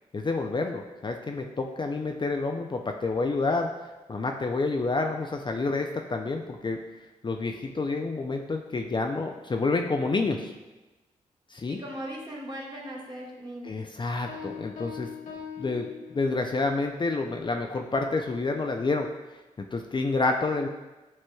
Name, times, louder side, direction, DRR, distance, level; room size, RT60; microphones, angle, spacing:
voice 1, 0.1-3.7 4.1-6.8 7.2-10.5 11.5-11.8 13.6-15.1 15.6-19.1 19.7-20.7, left 3 dB, 35° left, 3 dB, 0.4 m, -28 dB
voice 2, 11.7-13.8, equal, 35° right, -3 dB, 1.4 m, -38 dB
Piano, 14.3-16.6, left 7 dB, 80° left, 1.0 m, -41 dB
7.4 x 3.1 x 2.3 m, 1.1 s
supercardioid pair, 45°, 14 cm